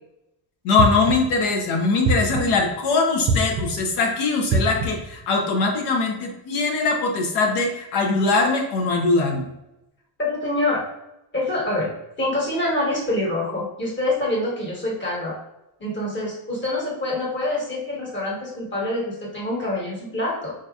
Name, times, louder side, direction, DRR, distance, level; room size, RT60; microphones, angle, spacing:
voice 1, 0.6-9.5, left 3 dB, 85° left, 2 dB, 0.9 m, -21 dB
sound 1, 0.8-1.4 2.0-2.7 3.3-3.9 4.5-5.2, right 3 dB, 45° right, 0.5 m, -24 dB
voice 2, 10.2-10.8 11.3-11.9 12.2-15.3 15.8-20.5, left 1 dB, 25° left, -4 dB, 1.3 m, -25 dB
4.7 x 2.8 x 2.3 m, 0.89 s
cardioid pair, 140°, 48 cm